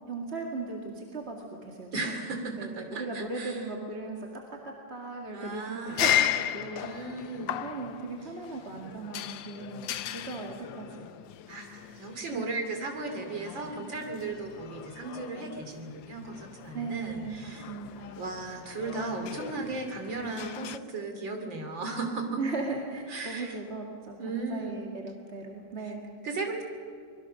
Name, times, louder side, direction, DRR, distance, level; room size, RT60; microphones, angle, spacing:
voice 1, 0.1-1.9 2.5-4.2 4.6-7.1 7.6-11.1 12.3-12.6 16.7-18.3 22.4-24.2 24.5-26.1, right 3 dB, 35° right, 0 dB, 2.4 m, -37 dB
voice 2, 1.9-3.7 5.3-6.1 6.7-7.6 11.5-17.7 18.2-22.4 23.1-23.6 24.2-24.8 25.8-25.9 26.2-26.6, right 3 dB, 85° right, 4 dB, 3.7 m, -36 dB
sound 1, 5.9-20.8, left 11 dB, 85° left, 1.5 m, -36 dB
25.0 x 21.0 x 6.4 m, 2.3 s
omnidirectional pair, 2.0 m